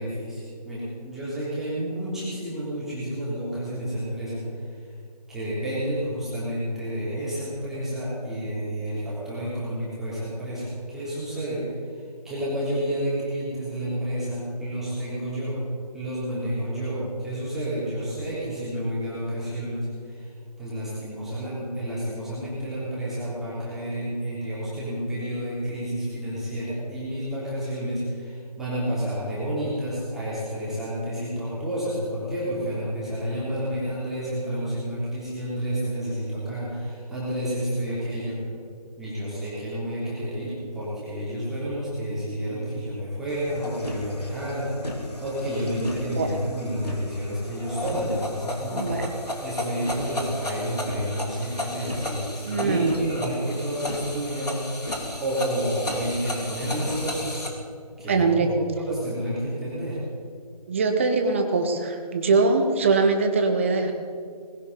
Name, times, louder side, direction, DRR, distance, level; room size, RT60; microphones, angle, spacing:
voice 1, 0.0-4.4 5.3-11.6 12.2-15.6 15.9-20.2 20.6-38.6 39.0-54.5 55.2-57.5 58.0-60.0, equal, ahead, -11 dB, 3.4 m, -30 dB
sound 1, 43.3-57.5, left 1 dB, 75° left, 3.5 m, -34 dB
voice 2, 48.7-49.1 52.5-52.9 58.1-58.5 60.7-63.9, right 4 dB, 20° right, 5 dB, 1.0 m, -22 dB
19.5 x 17.0 x 4.1 m, 2.3 s
figure-of-eight pair, 160°, 21 cm